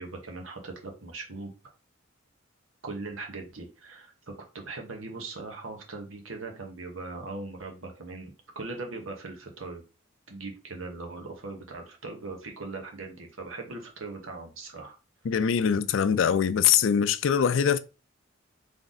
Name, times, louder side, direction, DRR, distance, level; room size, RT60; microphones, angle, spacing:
voice 1, 0.0-1.5 2.8-9.8 10.3-15.0, right 3 dB, 85° right, 1.3 m, -40 dB
voice 2, 15.3-17.8, left 7 dB, 75° left, 0.4 m, -23 dB
3.8 x 3.4 x 4.0 m
head